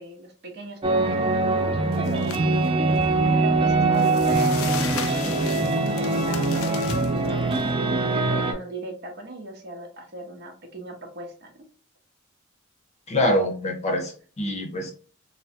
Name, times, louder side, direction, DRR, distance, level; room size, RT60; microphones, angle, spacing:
voice 1, 0.0-2.4 3.3-4.7 5.3-11.5, right 1 dB, 55° right, 3 dB, 0.8 m, -39 dB
sound 1, 0.8-8.5, right 3 dB, 25° right, 0.4 m, -22 dB
sound 2, 1.9-2.4 2.9-3.0 3.9-7.6, left 10 dB, 90° left, 0.3 m, -36 dB
voice 2, 13.1-14.9, left 1 dB, 35° left, 4 dB, 0.6 m, -25 dB
3.3 x 2.1 x 2.7 m, 0.40 s
head